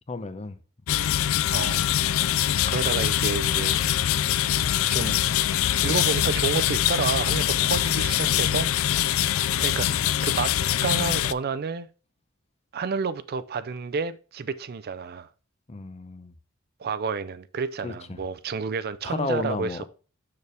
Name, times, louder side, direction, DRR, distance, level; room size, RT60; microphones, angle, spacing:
voice 1, 0.1-0.6 15.7-16.3 17.8-18.2 19.0-19.9, left 3 dB, 30° left, 0.7 m, -33 dB
sound 1, 0.9-11.3, left 11 dB, 85° left, 0.3 m, -23 dB
voice 2, 1.5-1.9 2.7-3.8 4.9-5.2 5.8-9.1 9.6-10.5 10.8-11.9 12.7-15.3 16.8-19.9, right 5 dB, 50° right, 0.5 m, -30 dB
6.9 x 6.7 x 3.4 m
head